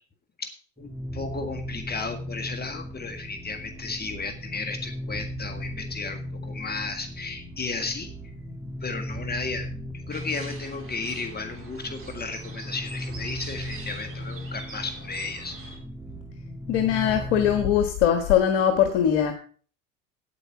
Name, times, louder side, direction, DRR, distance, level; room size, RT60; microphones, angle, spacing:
voice 1, 0.4-8.3 8.8-9.7 9.9-15.6 16.1-16.2, left 4 dB, 25° left, 6 dB, 1.8 m, -34 dB
sound 1, 0.8-17.8, equal, 5° right, 2.5 m, -37 dB
sound 2, 10.1-15.8, right 4 dB, 35° right, 3.8 m, -45 dB
voice 2, 16.7-19.3, left 9 dB, 75° left, 6 dB, 1.5 m, -21 dB
9.3 x 8.6 x 5.9 m, 0.42 s
hypercardioid pair, 85°, 39 cm